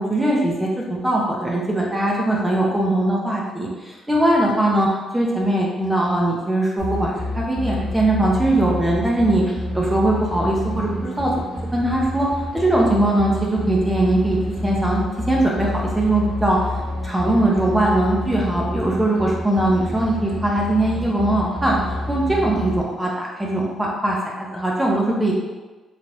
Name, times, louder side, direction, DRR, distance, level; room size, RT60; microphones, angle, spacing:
voice 1, 0.0-4.9 5.1-9.4 9.7-11.3 11.7-12.3 12.5-14.4 14.6-16.6 17.0-25.3, right 1 dB, 10° right, -3 dB, 0.6 m, -20 dB
sound 1, 6.8-22.8, left 1 dB, 80° right, 1.2 m, -28 dB
3.2 x 2.4 x 2.8 m, 1.2 s
cardioid pair, 90°, 0 cm